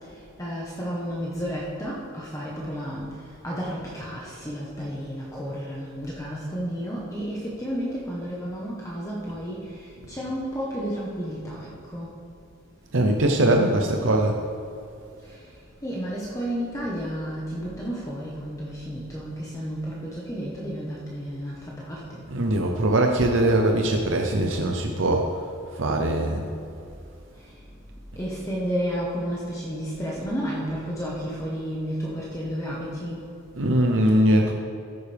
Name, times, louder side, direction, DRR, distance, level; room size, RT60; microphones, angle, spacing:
voice 1, 0.4-3.1 3.4-12.1 15.2-15.4 15.8-22.2 28.2-33.2, equal, 15° left, -5 dB, 1.2 m, -32 dB
voice 2, 12.9-14.4 22.3-25.3 25.8-26.4 33.5-34.5, right 1 dB, 75° right, 2 dB, 0.8 m, -21 dB
14.0 x 9.6 x 3.5 m, 2.5 s
head